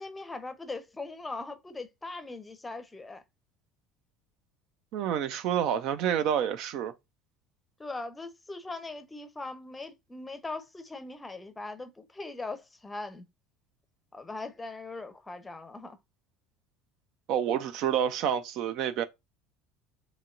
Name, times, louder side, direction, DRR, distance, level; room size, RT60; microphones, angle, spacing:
voice 1, 0.0-3.2 7.8-13.3 14.1-16.0, left 3 dB, 15° left, 0.6 m, -40 dB
voice 2, 4.9-6.9 17.3-19.0, right 9 dB, 55° right, 0.3 m, -28 dB
2.9 x 2.8 x 2.4 m
figure-of-eight pair, 70°, 0 cm